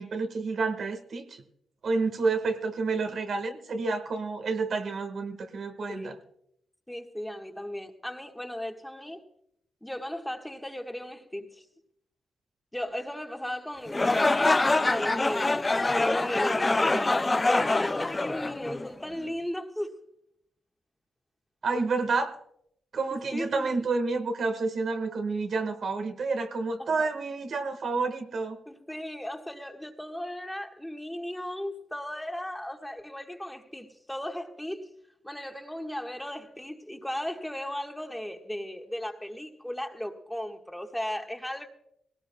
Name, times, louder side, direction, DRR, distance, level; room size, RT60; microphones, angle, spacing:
voice 1, 0.0-1.4 1.8-6.2 16.9-17.0 21.6-22.4 22.9-28.6, right 4 dB, 65° right, 1.6 m, -29 dB
voice 2, 6.9-9.2 9.8-11.6 12.7-20.0 23.1-23.7 26.8-27.1 28.7-34.9 35.2-41.7, left 1 dB, 5° left, 1.5 m, -36 dB
sound 1, 13.9-19.1, left 2 dB, 25° left, 0.4 m, -25 dB
19.5 x 17.5 x 2.3 m
cardioid pair, 75°, 0 cm